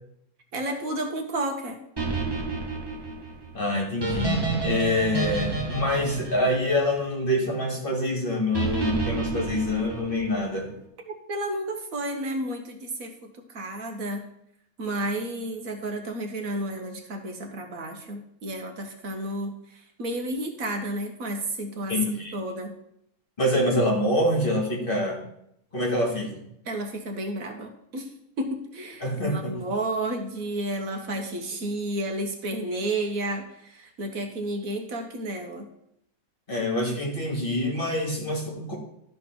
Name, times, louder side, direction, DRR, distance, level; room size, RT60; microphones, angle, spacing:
voice 1, 0.5-1.8 11.3-14.2 14.8-22.0 22.3-22.8 26.6-35.7, right 1 dB, 70° right, 4 dB, 1.6 m, -32 dB
sound 1, 2.0-7.3 8.5-10.5, right 3 dB, 15° right, 1.7 m, -30 dB
voice 2, 3.5-10.7 21.9-22.3 23.4-25.2 25.7-26.4 29.0-29.5 36.5-38.8, left 1 dB, 35° left, 0 dB, 2.3 m, -26 dB
12.0 x 4.1 x 6.0 m, 0.75 s
omnidirectional pair, 1.5 m